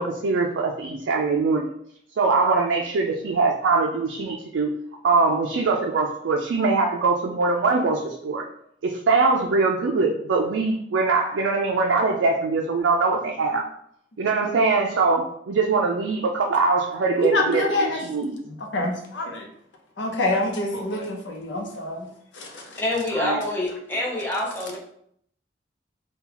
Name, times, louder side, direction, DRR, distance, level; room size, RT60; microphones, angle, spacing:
voice 1, 0.0-1.7 2.2-4.8 5.0-8.5 8.8-13.6 14.2-18.4 23.2-23.4, right 4 dB, 85° right, 0 dB, 0.4 m, -22 dB
voice 2, 17.2-18.0 18.7-19.5 20.0-22.1 22.3-22.8, left 2 dB, 85° left, 1 dB, 0.7 m, -26 dB
voice 3, 22.8-24.8, left 1 dB, 10° left, -3 dB, 0.7 m, -26 dB
3.8 x 2.3 x 2.9 m, 0.68 s
head